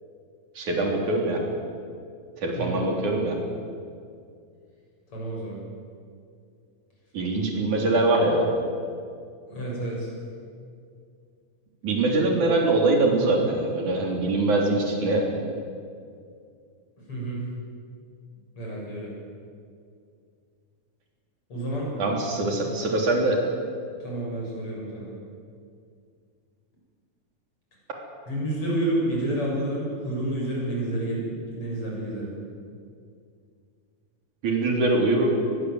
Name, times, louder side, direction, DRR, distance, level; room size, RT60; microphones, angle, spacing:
voice 1, 0.6-1.4 2.4-3.4 7.1-8.5 11.8-15.3 22.0-23.4 34.4-35.3, right 2 dB, 85° right, 1 dB, 5.0 m, -23 dB
voice 2, 2.6-2.9 5.1-5.6 9.5-10.1 17.1-17.4 18.6-19.1 21.5-21.9 24.0-25.1 28.3-32.3, right 1 dB, 45° left, -3 dB, 8.4 m, -29 dB
23.5 x 21.0 x 8.1 m, 2.3 s
omnidirectional pair, 3.3 m